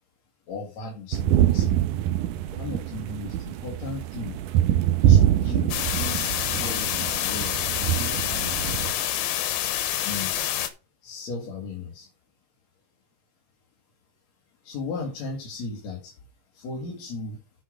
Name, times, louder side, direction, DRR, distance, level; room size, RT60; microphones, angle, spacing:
voice 1, 0.5-1.8 2.5-4.4 5.1-9.1 10.0-10.5 11.0-12.1 14.6-16.2 16.5-17.4, left 3 dB, 50° left, -1 dB, 2.7 m, -36 dB
sound 1, 1.1-8.9, right 11 dB, 80° right, 1.9 m, -24 dB
sound 2, 5.7-10.7, left 11 dB, 85° left, 2.9 m, -27 dB
8.3 x 6.4 x 5.2 m, 0.31 s
omnidirectional pair, 4.4 m